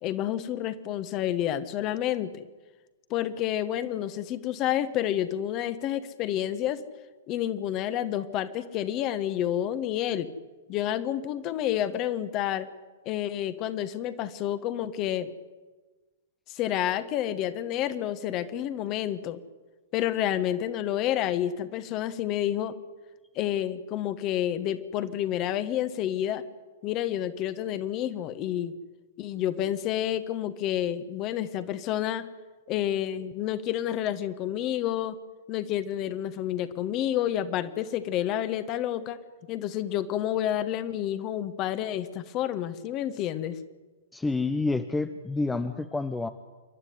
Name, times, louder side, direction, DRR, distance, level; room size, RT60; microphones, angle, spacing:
voice 1, 0.0-2.5 3.1-6.8 7.3-10.3 10.7-12.7 13.0-15.3 16.5-19.4 19.9-22.8 23.3-26.4 26.8-28.7 29.2-32.3 32.7-35.2 35.5-39.2 39.5-43.6, left 11 dB, 30° left, 12 dB, 1.5 m, -29 dB
voice 2, 44.1-46.3, left 3 dB, 10° left, 10 dB, 0.8 m, -28 dB
28.0 x 12.0 x 9.6 m, 1.3 s
figure-of-eight pair, 105°, 0 cm